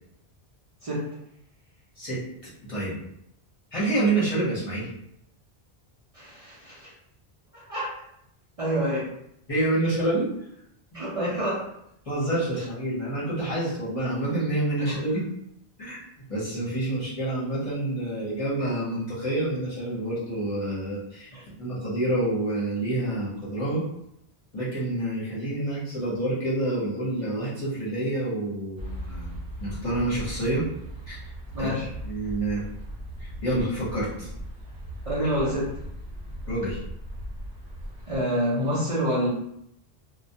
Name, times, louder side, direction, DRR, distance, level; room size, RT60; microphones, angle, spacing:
voice 1, 2.0-3.0 3.7-4.9 9.5-10.3 10.9-11.0 12.1-15.3 15.8-16.0 16.3-23.8 24.5-29.3 29.6-30.6 31.1-31.2 31.6-31.8 32.0-32.6 33.2-34.3 36.4-36.8, right 1 dB, 35° left, -9 dB, 0.8 m, -28 dB
voice 2, 6.1-6.9 7.5-7.9 8.6-9.1 10.9-11.7 12.6-12.7 14.9-15.0 21.3-21.4 31.5-31.9 35.1-35.7 38.1-39.3, equal, 40° right, -9 dB, 0.6 m, -27 dB
sound 1, 28.8-38.2, right 1 dB, 70° right, 1.0 m, -38 dB
2.2 x 2.1 x 2.7 m, 0.75 s
omnidirectional pair, 1.1 m